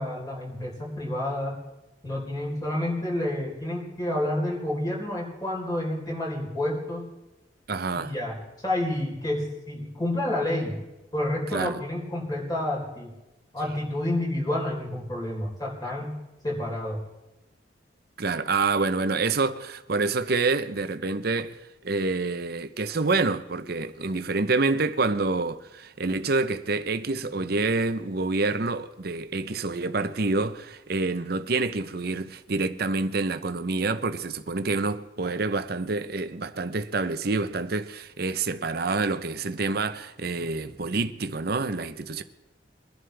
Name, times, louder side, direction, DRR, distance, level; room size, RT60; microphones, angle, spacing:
voice 1, 0.0-1.6 2.0-7.1 8.0-8.4 8.6-10.8 11.1-13.1 13.5-16.2 16.4-17.0, left 1 dB, 20° left, 4.0 m, -29 dB
voice 2, 7.7-8.1 11.5-11.8 18.2-21.6 21.8-42.2, right 3 dB, 55° right, 0.8 m, -27 dB
23.0 x 11.0 x 3.4 m
head